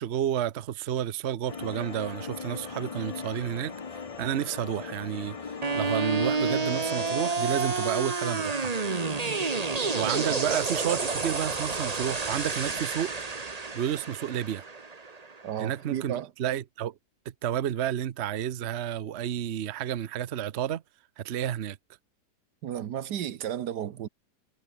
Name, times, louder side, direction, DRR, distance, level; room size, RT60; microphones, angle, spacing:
voice 1, 0.0-3.8 4.2-8.7 9.9-13.1 13.7-14.6 15.6-16.1 16.4-16.9 17.4-20.8 21.2-21.8, right 10 dB, 50° right, 0.9 m, -31 dB
sound 1, 1.5-7.3, left 5 dB, 35° left, 0.6 m, -39 dB
sound 2, 5.6-15.7, right 4 dB, 25° right, 1.3 m, -30 dB
voice 2, 15.4-16.3 22.6-24.1, right 10 dB, 85° right, 1.6 m, -33 dB
omnidirectional pair, 1.7 m